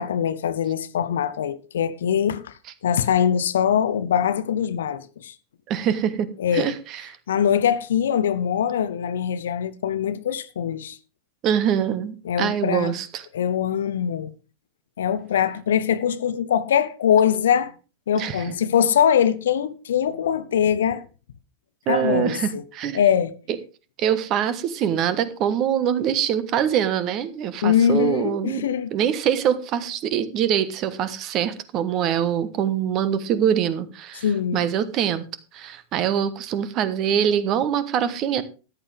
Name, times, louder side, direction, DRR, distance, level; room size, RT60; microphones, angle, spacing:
voice 1, 0.0-2.5 2.8-5.3 6.4-6.7 7.3-11.0 12.2-12.9 13.3-14.3 15.0-17.7 18.1-21.0 21.9-22.6 22.9-23.3 27.6-28.9 34.2-34.7, left 8 dB, 65° left, 0.7 m, -22 dB
voice 2, 5.7-6.3 6.5-7.2 11.4-13.3 18.1-18.5 21.9-23.0 24.0-34.2 34.5-35.2 35.5-38.4, right 9 dB, 35° right, 1.2 m, -24 dB
14.0 x 10.0 x 3.4 m
figure-of-eight pair, 90°, 0 cm